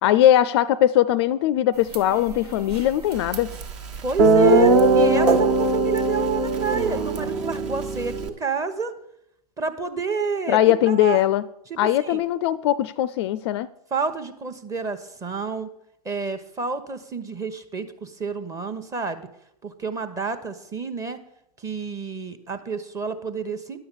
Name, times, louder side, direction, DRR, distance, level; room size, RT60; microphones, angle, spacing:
voice 1, 0.0-3.5 10.5-11.4 11.8-13.7, left 12 dB, 45° left, 0.4 m, -20 dB
sound 1, 1.7-7.3, right 5 dB, 80° right, 1.1 m, -34 dB
Guitar, 3.6-3.7 4.2-8.3, right 2 dB, 50° right, 1.4 m, -19 dB
voice 2, 4.0-8.9 9.6-11.2 11.7-12.2 13.9-15.7 16.0-19.3 19.6-21.2 21.6-23.8, right 4 dB, 15° right, 0.9 m, -29 dB
10.5 x 7.0 x 7.0 m
hypercardioid pair, 115°, 20 cm